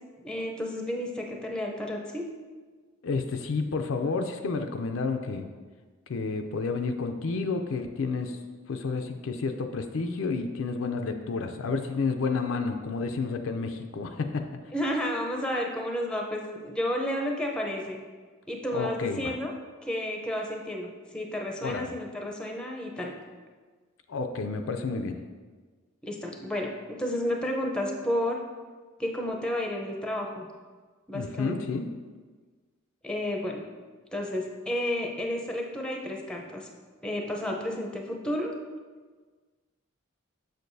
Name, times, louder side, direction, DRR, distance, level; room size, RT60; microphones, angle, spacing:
voice 1, 0.2-2.2 14.7-18.0 18.5-19.5 19.9-23.1 26.0-28.4 29.0-30.5 31.1-31.6 33.0-33.6 34.1-36.7 37.0-38.5, left 1 dB, 5° left, 1 dB, 0.6 m, -31 dB
voice 2, 3.0-5.5 6.1-8.4 8.7-14.5 18.7-19.3 21.6-21.9 24.1-25.2 31.1-31.9, left 4 dB, 65° left, 6 dB, 0.4 m, -30 dB
6.5 x 6.4 x 2.6 m, 1.4 s
head